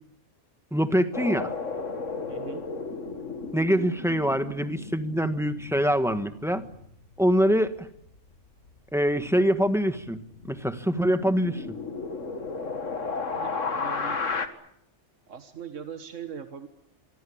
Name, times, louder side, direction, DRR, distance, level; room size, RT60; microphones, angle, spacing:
voice 1, 0.7-1.5 3.5-6.6 7.2-7.9 8.9-10.2 10.5-11.8, equal, ahead, 9 dB, 1.4 m, -24 dB
sound 1, 1.1-8.3 8.6-8.7 9.1-14.5, left 4 dB, 85° left, 2.2 m, -34 dB
voice 2, 2.3-2.6 13.3-14.2 15.3-16.7, right 7 dB, 80° right, 8 dB, 1.8 m, -40 dB
26.0 x 23.0 x 8.7 m, 0.73 s
omnidirectional pair, 1.3 m